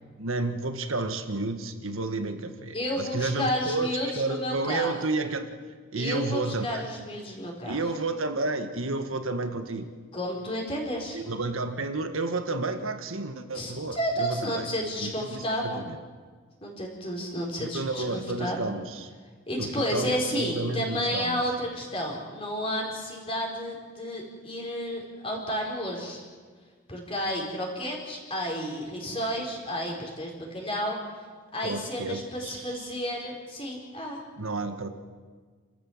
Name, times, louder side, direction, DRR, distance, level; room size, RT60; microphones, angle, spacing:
voice 1, 0.2-5.5 5.9-6.8 7.6-9.9 11.1-14.7 15.0-16.0 17.6-19.1 19.6-21.4 31.6-33.0 34.4-34.9, right 3 dB, 75° right, 8 dB, 1.6 m, -31 dB
voice 2, 2.7-4.9 5.9-7.8 10.1-11.2 13.5-15.8 16.6-18.7 19.5-26.2 26.9-31.0 31.5-34.2, equal, 25° left, -1 dB, 4.5 m, -31 dB
29.5 x 14.0 x 7.3 m, 1.6 s
head